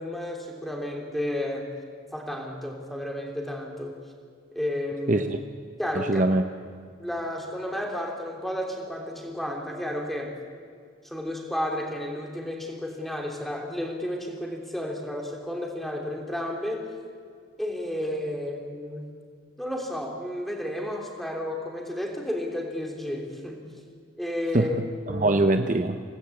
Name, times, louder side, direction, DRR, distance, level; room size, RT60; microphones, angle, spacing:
voice 1, 0.0-1.6 2.1-4.0 4.5-5.3 5.8-6.2 7.0-10.4 11.0-16.9 17.6-19.1 19.6-23.6 24.2-24.8 25.1-25.3, left 1 dB, ahead, 1 dB, 3.1 m, -32 dB
voice 2, 5.1-5.4 5.9-6.4 24.5-26.0, right 2 dB, 40° right, 7 dB, 0.8 m, -23 dB
26.5 x 18.5 x 8.4 m, 2.1 s
head